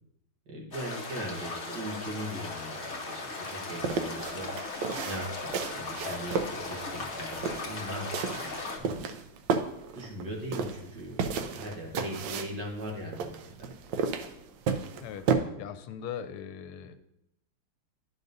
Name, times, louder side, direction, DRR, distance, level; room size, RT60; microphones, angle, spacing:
voice 1, 0.5-4.5 5.0-9.1 9.6-9.7 9.9-13.3 13.6-13.7, right 1 dB, 55° right, -2 dB, 1.9 m, -39 dB
sound 1, 0.7-8.8, left 3 dB, 55° left, 0.6 m, -38 dB
sound 2, 3.7-15.4, right 5 dB, 70° right, 1.1 m, -33 dB
voice 2, 15.6-17.0, left 8 dB, 85° left, 11 dB, 1.5 m, -39 dB
11.5 x 5.3 x 2.6 m, 0.81 s
omnidirectional pair, 2.3 m